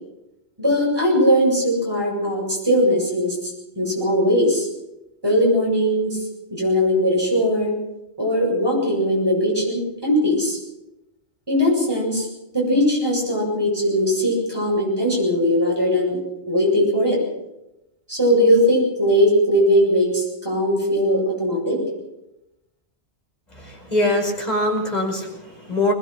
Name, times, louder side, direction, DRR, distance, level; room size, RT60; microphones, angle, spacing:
voice 1, 0.6-4.7 5.2-6.2 6.5-7.7 8.2-10.6 11.5-12.3 12.5-16.2 16.5-17.2 18.1-21.8, equal, 20° right, -2 dB, 8.2 m, -19 dB
voice 2, 23.6-25.9, left 1 dB, 35° left, 0 dB, 5.5 m, -23 dB
21.5 x 20.5 x 6.3 m, 0.92 s
omnidirectional pair, 1.1 m